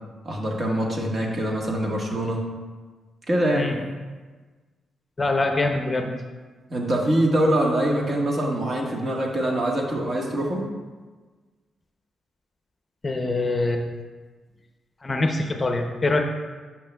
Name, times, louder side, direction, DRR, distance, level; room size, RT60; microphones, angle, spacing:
voice 1, 0.2-2.4 3.3-3.7 6.7-10.7, right 1 dB, 45° right, -1 dB, 1.4 m, -24 dB
voice 2, 5.2-6.1 13.0-13.8 15.0-16.2, left 2 dB, 30° left, 4 dB, 0.6 m, -24 dB
10.0 x 6.1 x 2.3 m, 1.4 s
cardioid pair, 85°, 0 cm